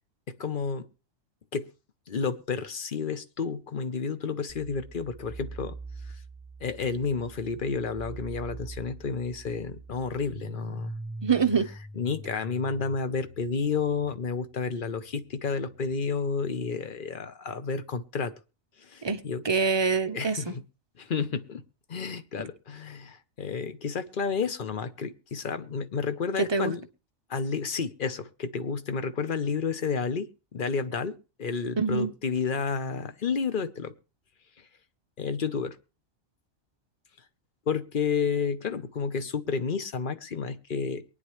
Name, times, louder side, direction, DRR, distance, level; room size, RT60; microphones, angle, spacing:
voice 1, 0.3-0.9 1.5-1.7 2.1-5.8 6.1-6.2 6.6-10.9 11.9-18.3 18.8-19.4 20.1-20.6 21.0-21.6 21.9-26.9 27.3-33.9 35.2-35.8 37.7-41.0, left 5 dB, 45° left, 1.0 m, -31 dB
sound 1, 4.5-15.9, right 2 dB, 10° right, 0.9 m, -43 dB
voice 2, 11.2-11.7 19.0-20.5 26.5-26.7 31.8-32.1, right 5 dB, 30° right, 0.6 m, -25 dB
23.0 x 9.7 x 3.2 m
omnidirectional pair, 1.4 m